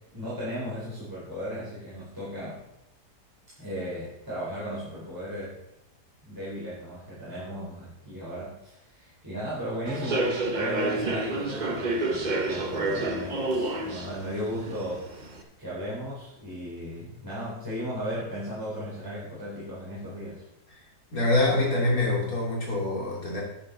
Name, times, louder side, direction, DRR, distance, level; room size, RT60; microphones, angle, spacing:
voice 1, 0.1-2.6 3.6-5.6 6.2-20.4, equal, 10° right, -10 dB, 3.9 m, -36 dB
Human voice / Subway metro underground, 9.9-15.4, right 2 dB, 30° right, 0.9 m, -29 dB
voice 2, 21.1-23.4, left 2 dB, 55° left, -4 dB, 3.5 m, -25 dB
11.0 x 9.7 x 4.0 m, 0.85 s
omnidirectional pair, 1.8 m